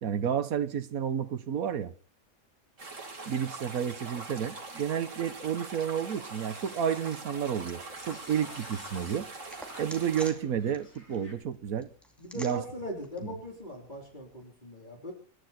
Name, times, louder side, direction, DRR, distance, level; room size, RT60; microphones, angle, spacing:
voice 1, 0.0-1.9 3.3-9.3 9.8-11.9 12.3-12.6, right 8 dB, 80° right, 1.5 m, -31 dB
sound 1, 2.8-10.3, right 3 dB, 60° right, 2.7 m, -43 dB
sound 2, 5.8-11.3, left 2 dB, 70° left, 5.5 m, -53 dB
sound 3, 7.7-14.5, equal, ahead, 2.7 m, -52 dB
voice 2, 12.2-15.1, equal, 30° left, 4.0 m, -40 dB
26.0 x 12.0 x 4.4 m
omnidirectional pair, 1.5 m